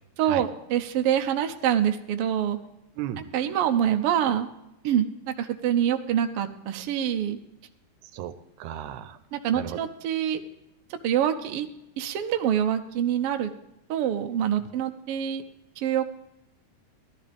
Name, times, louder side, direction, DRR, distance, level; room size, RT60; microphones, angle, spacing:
voice 1, 0.2-2.6 3.3-4.5 4.8-7.4 9.3-10.4 11.0-11.7 12.0-13.5 13.9-15.4 15.8-16.0, right 10 dB, 70° right, 7 dB, 1.4 m, -25 dB
voice 2, 3.0-3.3 8.0-9.2 9.5-9.8, right 11 dB, 85° right, 12 dB, 2.1 m, -35 dB
17.5 x 12.0 x 3.5 m, 0.87 s
omnidirectional pair, 3.4 m